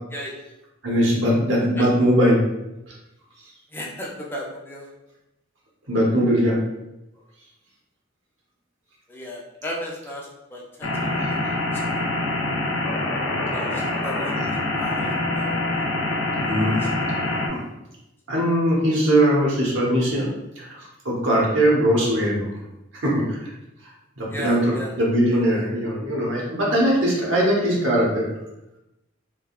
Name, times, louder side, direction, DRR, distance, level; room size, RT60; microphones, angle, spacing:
voice 1, 0.8-2.4 2.9-3.0 5.9-6.6 16.3-16.7 17.5-17.6 18.3-20.3 20.6-20.8 21.0-22.5 23.0-23.5 24.2-24.6 25.0-28.3, equal, 85° right, -4 dB, 1.0 m, -20 dB
voice 2, 3.7-4.9 9.1-11.9 13.5-14.4 14.7-15.1 15.3-15.6 16.6-16.9 24.3-24.9, left 1 dB, 10° left, -3 dB, 0.5 m, -35 dB
sound 1, 10.8-17.5, left 2 dB, 90° left, 0.5 m, -25 dB
3.5 x 2.2 x 2.4 m, 0.92 s
head